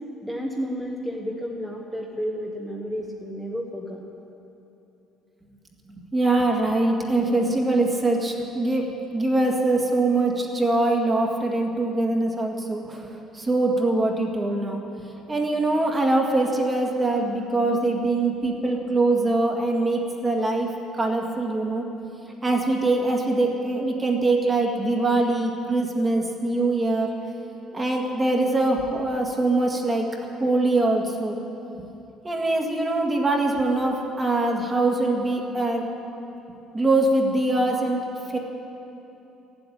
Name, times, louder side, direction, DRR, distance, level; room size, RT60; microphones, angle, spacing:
voice 1, 0.2-4.0, equal, 5° left, -2 dB, 1.1 m, -31 dB
voice 2, 5.9-8.9 9.1-20.7 21.0-21.9 22.4-27.1 27.7-30.1 30.4-31.4 31.8-31.9 32.2-35.8 36.7-38.0 38.3-38.4, right 2 dB, 20° right, 1 dB, 1.8 m, -23 dB
14.5 x 8.0 x 10.0 m, 3.0 s
cardioid pair, 130°, 0 cm